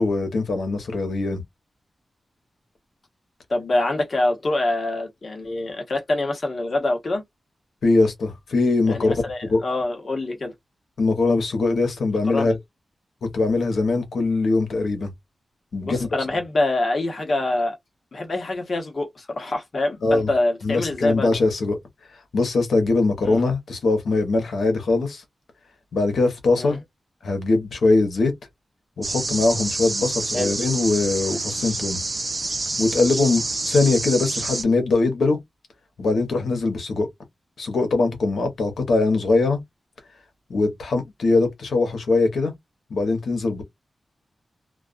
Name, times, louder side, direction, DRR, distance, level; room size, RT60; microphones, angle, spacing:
voice 1, 0.0-1.4 7.8-9.6 11.0-12.6 13.2-15.1 15.7-16.1 20.0-20.3 20.6-21.8 22.3-25.2 25.9-26.8 27.2-28.3 29.0-32.0 32.8-35.4 36.0-37.1 37.6-39.6 40.5-42.5 42.9-43.6, left 3 dB, 85° left, 0.9 m, -21 dB
voice 2, 3.5-7.2 8.8-10.5 12.3-12.5 15.8-17.8 18.1-21.4 23.2-23.4 26.6-26.8 30.3-30.5, left 2 dB, 50° left, 0.9 m, -25 dB
sound 1, 29.0-34.6, right 3 dB, 30° right, 0.4 m, -28 dB
2.3 x 2.3 x 2.4 m
wide cardioid pair, 120°, 0 cm